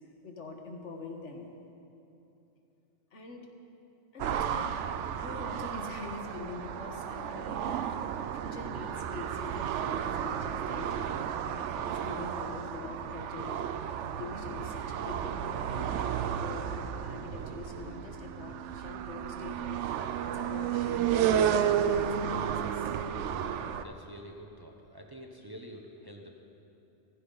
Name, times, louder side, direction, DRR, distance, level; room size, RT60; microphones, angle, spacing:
voice 1, 0.2-1.5 3.1-3.5 4.1-4.7 5.2-19.8 20.2-23.0, left 3 dB, 75° left, 2 dB, 1.7 m, -44 dB
sound 1, 4.2-23.8, right 9 dB, 80° right, 0.9 m, -32 dB
voice 2, 23.3-26.3, right 1 dB, 20° right, 1 dB, 0.8 m, -48 dB
15.0 x 15.0 x 3.9 m, 2.8 s
omnidirectional pair, 1.2 m